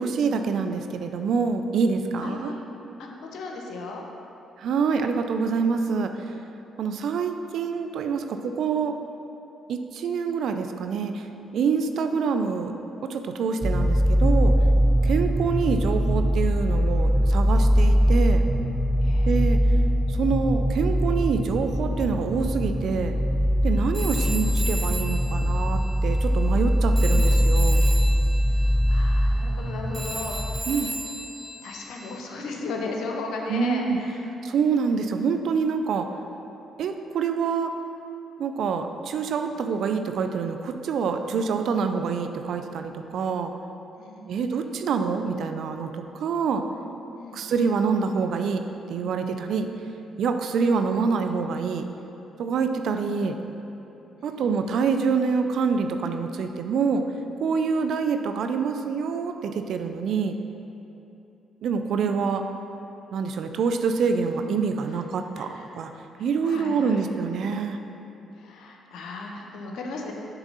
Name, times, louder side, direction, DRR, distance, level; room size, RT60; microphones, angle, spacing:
voice 1, 0.0-2.5 4.6-6.1 6.8-9.0 9.7-11.3 11.5-12.7 13.0-14.5 15.0-18.4 19.2-19.6 20.2-23.2 23.6-27.9 30.7-30.9 33.5-34.0 34.4-36.1 36.8-37.7 38.4-43.5 44.3-46.6 47.3-48.6 48.9-49.7 50.2-51.8 52.4-53.4 54.2-57.0 57.4-60.4 61.6-62.5 63.1-65.9 66.2-67.8, right 5 dB, 70° right, 7 dB, 0.4 m, -26 dB
voice 2, 2.2-2.7 3.0-4.0 19.0-19.3 23.6-24.3 28.5-30.6 31.6-34.2 41.3-41.5 44.0-44.7 47.2-47.6 54.2-54.8 64.9-65.0 65.4-65.7 66.4-67.1 68.3-70.1, left 3 dB, 70° left, 1 dB, 0.8 m, -36 dB
sound 1, 13.6-30.6, equal, ahead, 0.5 m, -22 dB
Telephone, 23.9-26.7 27.0-32.2, right 2 dB, 20° right, 1.0 m, -36 dB
6.8 x 3.6 x 5.5 m, 2.9 s
hypercardioid pair, 50°, 0 cm